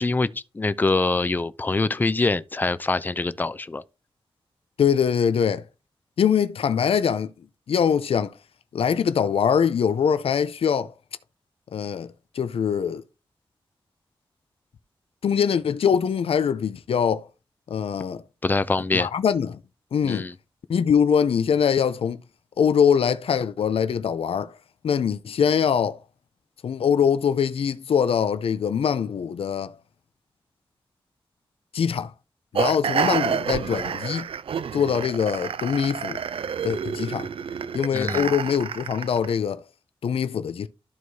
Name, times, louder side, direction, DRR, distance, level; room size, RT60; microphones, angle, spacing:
voice 1, 0.0-3.8 18.4-19.1 20.0-20.3 37.9-38.3, left 3 dB, 20° left, 0.4 m, -24 dB
voice 2, 4.8-5.6 6.2-7.3 7.7-8.3 8.7-10.9 11.7-13.0 15.2-17.3 17.7-18.2 18.9-19.6 19.9-20.3 20.7-22.2 22.6-24.5 24.8-26.0 26.6-29.8 31.7-32.1 32.5-34.3 34.7-36.2 36.6-37.3 37.7-39.6 40.0-40.7, left 7 dB, 85° left, 0.5 m, -23 dB
sound 1, 32.5-39.3, right 7 dB, 75° right, 0.4 m, -29 dB
13.0 x 4.6 x 2.7 m
wide cardioid pair, 175°, 10 cm